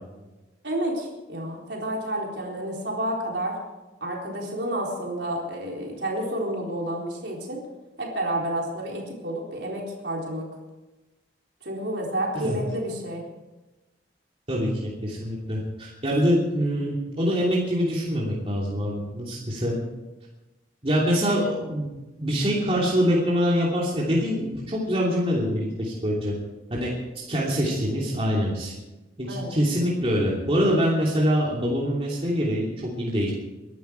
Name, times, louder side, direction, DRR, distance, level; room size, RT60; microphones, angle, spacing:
voice 1, 0.6-3.5 4.0-7.6 8.0-10.5 11.6-13.2 29.3-29.5, right 1 dB, 75° right, -1 dB, 4.1 m, -30 dB
voice 2, 14.5-19.8 20.8-21.9 22.2-26.3 26.7-26.9 27.3-28.7 29.2-33.3, equal, 35° right, -5 dB, 2.9 m, -24 dB
22.5 x 11.5 x 4.7 m, 1.1 s
head